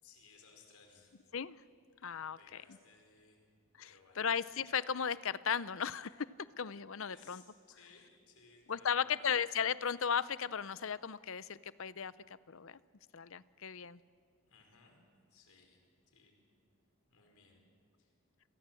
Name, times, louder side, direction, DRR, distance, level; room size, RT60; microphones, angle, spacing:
voice 1, 0.0-1.2 2.2-3.4 3.8-4.3 7.0-9.3 14.5-15.0 15.3-16.4 17.1-17.6 18.0-18.1, left 5 dB, 85° left, 3 dB, 5.1 m, -62 dB
voice 2, 2.0-2.6 3.8-3.9 4.2-6.3 6.6-7.4 8.7-12.8 13.1-14.0, left 7 dB, 65° left, 17 dB, 0.6 m, -36 dB
28.5 x 23.0 x 7.7 m, 2.3 s
head